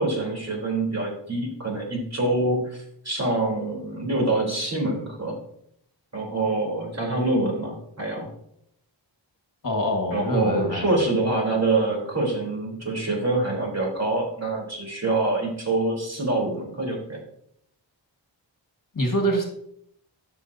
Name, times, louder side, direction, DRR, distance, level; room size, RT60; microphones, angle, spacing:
voice 1, 0.0-5.4 6.1-8.3 10.1-17.2, right 2 dB, 35° right, -2 dB, 3.5 m, -25 dB
voice 2, 9.6-10.9 18.9-19.4, equal, 45° left, 2 dB, 1.6 m, -25 dB
13.0 x 6.2 x 2.7 m, 0.73 s
wide cardioid pair, 85°, 46 cm